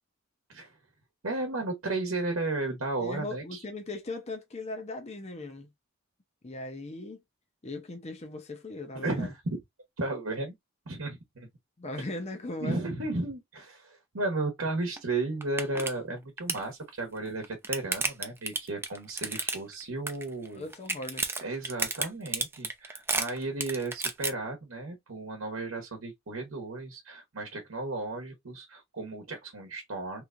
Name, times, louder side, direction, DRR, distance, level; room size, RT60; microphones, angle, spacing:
voice 1, 1.2-3.6 8.9-9.6 10.0-10.5 10.9-11.5 12.6-20.6 21.4-30.2, right 2 dB, 75° right, 1.0 m, -34 dB
voice 2, 3.0-5.7 6.4-7.2 7.6-9.3 11.8-12.9 20.5-21.4, left 2 dB, 30° left, 0.6 m, -39 dB
sound 1, 15.0-15.1 15.4-15.9 16.2-16.7 17.3-19.8 20.1-20.5 20.7-24.3, right 3 dB, 10° right, 0.4 m, -31 dB
3.3 x 3.1 x 2.5 m
head